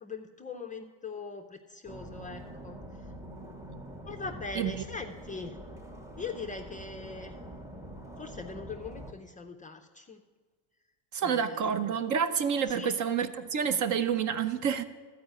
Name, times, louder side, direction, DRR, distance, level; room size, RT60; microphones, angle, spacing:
voice 1, 0.0-2.8 4.1-5.6 6.2-7.4 8.2-10.2 11.2-11.7 12.7-12.9, left 4 dB, 15° left, 0.4 m, -41 dB
sound 1, 1.8-9.1, equal, 5° right, 0.7 m, -45 dB
voice 2, 11.1-14.8, right 7 dB, 40° right, 0.5 m, -28 dB
12.5 x 4.8 x 8.0 m
supercardioid pair, 110°, 50 cm